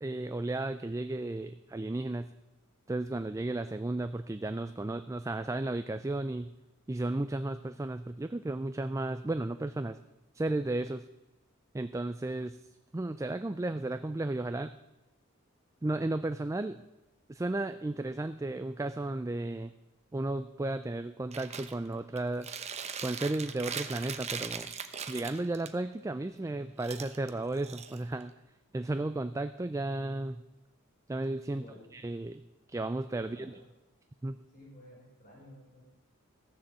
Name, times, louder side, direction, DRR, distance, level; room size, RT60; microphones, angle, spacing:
voice 1, 0.0-2.3 2.9-6.5 6.9-10.0 10.3-11.1 11.7-12.6 12.9-14.7 15.8-16.8 17.3-19.7 20.1-22.5 23.0-24.7 25.1-28.3 28.7-30.4 31.1-31.6 31.9-32.4 32.7-33.6 34.2-34.4, right 2 dB, 15° right, 10 dB, 0.4 m, -34 dB
Chewing mastication, 21.3-21.7 22.2-25.7 26.8-28.3, right 6 dB, 30° right, 0.9 m, -40 dB
voice 2, 31.4-31.9 33.1-33.7 34.5-35.8, left 1 dB, 40° left, -5 dB, 5.2 m, -53 dB
15.0 x 7.2 x 7.5 m, 0.99 s
head